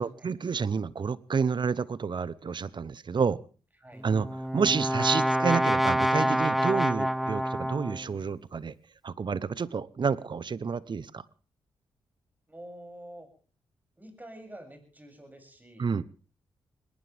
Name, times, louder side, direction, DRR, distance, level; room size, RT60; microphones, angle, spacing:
voice 1, 0.0-3.4 4.0-4.3 4.5-8.7 9.0-11.2 15.8-16.0, right 5 dB, 50° right, 19 dB, 0.9 m, -29 dB
Brass instrument, 4.0-8.1, equal, ahead, 1.0 m, -27 dB
voice 2, 12.5-13.3 14.0-15.9, right 1 dB, 15° right, 5 dB, 7.3 m, -47 dB
21.5 x 18.5 x 3.6 m, 0.38 s
supercardioid pair, 50°, 10 cm